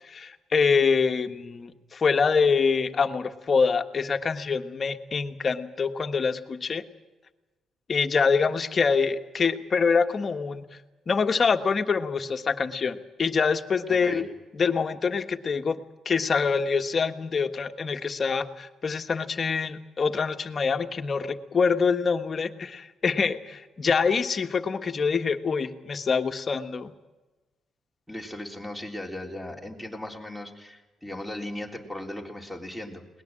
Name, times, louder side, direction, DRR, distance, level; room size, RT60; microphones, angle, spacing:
voice 1, 0.1-6.8 7.9-10.6 11.1-14.2 14.6-15.8 16.0-26.9, left 5 dB, 40° left, 7 dB, 1.4 m, -25 dB
voice 2, 13.9-14.2 28.1-33.2, left 1 dB, 5° right, 2 dB, 3.7 m, -37 dB
21.0 x 19.5 x 7.6 m, 1.2 s
cardioid pair, 90°, 0 cm